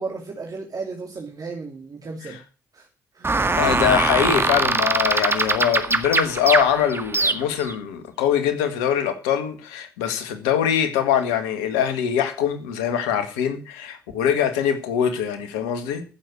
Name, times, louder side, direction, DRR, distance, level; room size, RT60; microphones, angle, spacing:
voice 1, 0.0-2.4 2.7-2.9 3.1-3.4, right 4 dB, 45° right, 2.6 m, -34 dB
sound 1, 3.2-7.7, right 3 dB, 25° right, 1.8 m, -22 dB
voice 2, 3.6-16.0, left 9 dB, 80° left, 1.9 m, -23 dB
15.0 x 7.2 x 6.3 m
hypercardioid pair, 45°, 9 cm